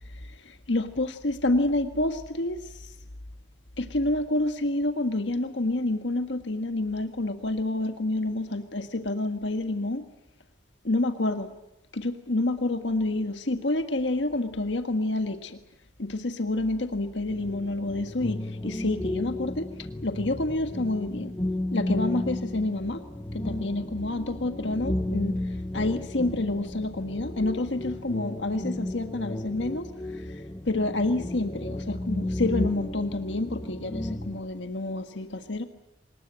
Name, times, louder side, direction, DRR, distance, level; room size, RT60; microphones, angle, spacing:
voice 1, 0.1-2.9 3.8-10.0 10.8-11.5 11.9-15.6 16.0-19.7 20.0-21.3 21.7-23.0 23.3-30.2 30.6-35.6, left 2 dB, 75° left, 7 dB, 1.6 m, -28 dB
sound 1, 17.3-34.4, left 1 dB, 15° left, 1.1 m, -33 dB
25.0 x 20.5 x 8.8 m, 0.90 s
head